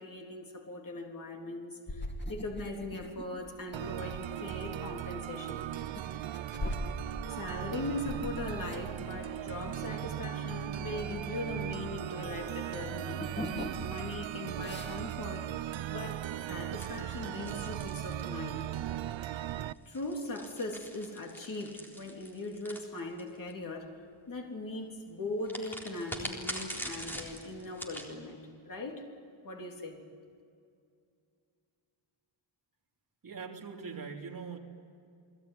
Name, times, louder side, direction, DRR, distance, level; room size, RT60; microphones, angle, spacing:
voice 1, 0.0-5.6 7.3-13.2 13.8-15.5 15.9-18.6 19.9-24.0 24.3-29.0 29.4-30.0, left 2 dB, 45° left, 1 dB, 3.5 m, -40 dB
sound 1, 1.9-12.2 12.5-14.1 14.4-15.1, left 1 dB, 25° left, 2.5 m, -42 dB
sound 2, 3.7-19.7, right 12 dB, 75° right, 0.7 m, -38 dB
sound 3, 16.8-18.8 19.7-23.5 25.4-28.1, equal, 5° left, 3.9 m, -43 dB
voice 2, 33.2-34.6, right 5 dB, 45° right, 0 dB, 3.3 m, -42 dB
30.0 x 20.5 x 9.7 m, 2.4 s
wide cardioid pair, 180°, 47 cm